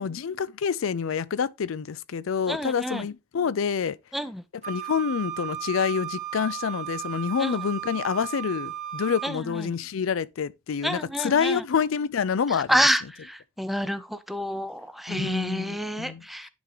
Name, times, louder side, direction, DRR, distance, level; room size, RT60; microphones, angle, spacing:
voice 1, 0.0-4.0 4.6-12.9 15.1-16.5, left 6 dB, 85° left, 0.4 m, -27 dB
voice 2, 2.5-3.0 4.1-4.4 7.4-7.6 9.2-9.7 10.8-11.6 12.7-16.5, equal, ahead, 0.5 m, -28 dB
Wind instrument woodwind instrument, 4.6-9.3, right 11 dB, 35° right, 2.0 m, -35 dB
10.5 x 3.7 x 3.1 m
head